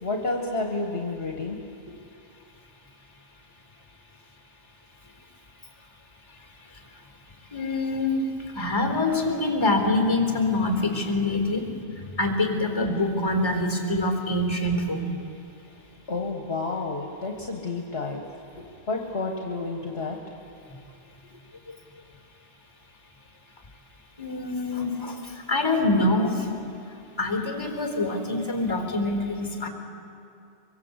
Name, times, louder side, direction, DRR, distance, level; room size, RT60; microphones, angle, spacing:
voice 1, 0.0-2.0 16.1-18.2 18.5-20.2, left 3 dB, 60° left, 2 dB, 1.9 m, -30 dB
voice 2, 7.5-8.2 8.6-11.7 12.2-15.1 24.2-25.1 25.5-26.3 27.2-29.7, left 2 dB, 20° left, 3 dB, 4.1 m, -25 dB
23.5 x 23.5 x 8.2 m, 2.5 s
omnidirectional pair, 1.2 m